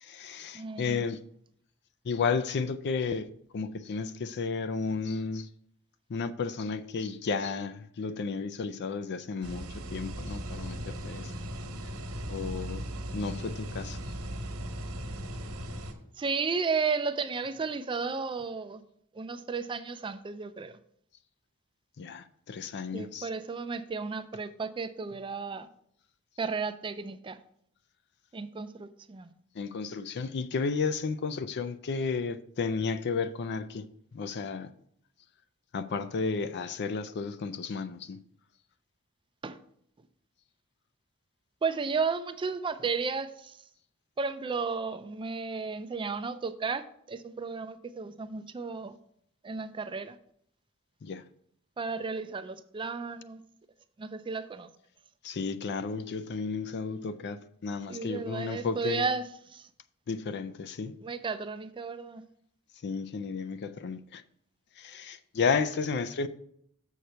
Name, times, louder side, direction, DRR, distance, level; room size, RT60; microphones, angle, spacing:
voice 1, 0.0-1.2 2.1-5.5 6.1-9.7 9.9-11.3 12.3-12.8 13.1-14.0 22.0-23.3 29.6-33.9 34.1-34.7 35.7-38.2 51.0-51.2 55.2-59.1 60.1-61.0 62.8-64.2 64.8-66.3, left 5 dB, 50° left, 0.4 m, -33 dB
voice 2, 0.5-1.0 16.2-18.8 19.1-20.8 22.9-25.7 26.4-27.4 28.3-29.3 39.4-39.6 41.6-43.6 44.2-49.0 49.4-50.2 51.8-53.4 54.0-54.7 57.9-59.7 61.0-62.2, right 5 dB, 25° right, 0.4 m, -33 dB
sound 1, 9.4-15.9, right 1 dB, 80° right, 1.3 m, -38 dB
6.7 x 6.5 x 4.3 m
head